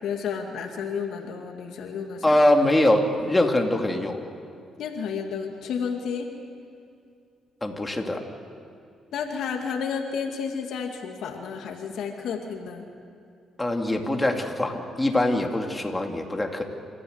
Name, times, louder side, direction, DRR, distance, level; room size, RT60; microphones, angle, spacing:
voice 1, 0.0-2.2 4.8-6.3 9.1-12.8, left 6 dB, 75° left, 3 dB, 2.2 m, -31 dB
voice 2, 2.2-4.2 7.6-8.2 13.6-16.6, left 1 dB, 15° left, 3 dB, 2.5 m, -23 dB
28.0 x 14.5 x 8.1 m, 2.4 s
cardioid pair, 90°, 0 cm